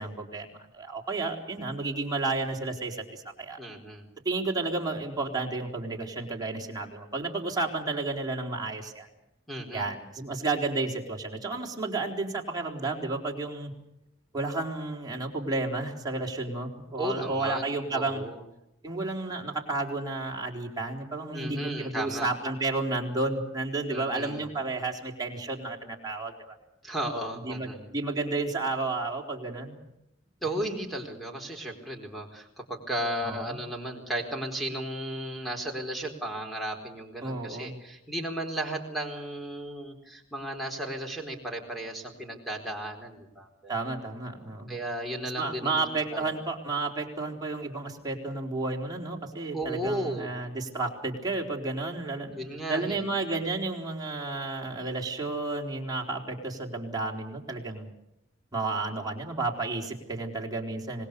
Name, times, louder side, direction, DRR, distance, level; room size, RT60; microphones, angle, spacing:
voice 1, 0.0-3.6 4.2-9.1 9.7-13.7 14.3-18.2 18.8-26.6 27.4-29.8 33.2-33.6 37.2-37.8 43.7-44.7 45.4-52.4 52.7-57.9 58.5-61.1, right 3 dB, 20° right, 0 dB, 4.2 m, -32 dB
voice 2, 3.6-4.1 9.5-9.9 17.0-18.4 21.3-22.3 23.9-24.5 26.8-27.9 30.4-43.7 44.7-45.8 46.1-46.3 49.5-50.4 52.3-53.0, right 1 dB, ahead, 3 dB, 4.4 m, -34 dB
26.0 x 20.0 x 6.8 m, 0.87 s
head